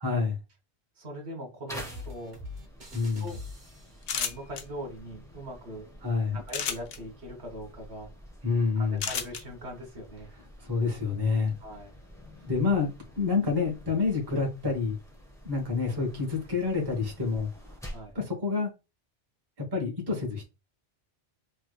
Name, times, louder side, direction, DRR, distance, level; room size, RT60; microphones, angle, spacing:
voice 1, 0.0-0.4 2.9-3.3 6.0-6.4 8.4-9.0 10.6-11.5 12.4-14.9 15.4-17.7 18.1-18.7 19.7-20.4, left 4 dB, 20° right, 1.0 m, -28 dB
voice 2, 1.0-2.4 3.2-3.4 4.1-5.9 6.3-8.1 8.8-10.3 11.6-11.9 12.3-12.5 17.9-18.2, equal, 70° right, 1.4 m, -41 dB
sound 1, 1.7-18.2, equal, 5° left, 0.7 m, -48 dB
sound 2, 1.8-4.2, left 2 dB, 45° right, 1.1 m, -44 dB
sound 3, 4.0-4.6 6.5-7.0 9.0-9.4, left 7 dB, 75° left, 0.9 m, -31 dB
3.3 x 3.0 x 2.3 m
omnidirectional pair, 1.1 m